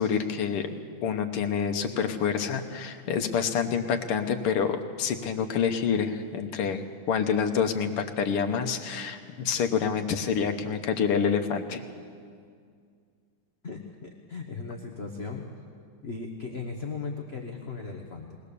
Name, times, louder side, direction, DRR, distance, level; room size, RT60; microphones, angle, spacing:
voice 1, 0.0-11.8, left 7 dB, 85° left, 6 dB, 2.0 m, -27 dB
voice 2, 13.6-15.5 16.0-18.4, left 4 dB, 35° left, 2 dB, 1.1 m, -37 dB
21.0 x 19.5 x 6.9 m, 2.2 s
omnidirectional pair, 2.4 m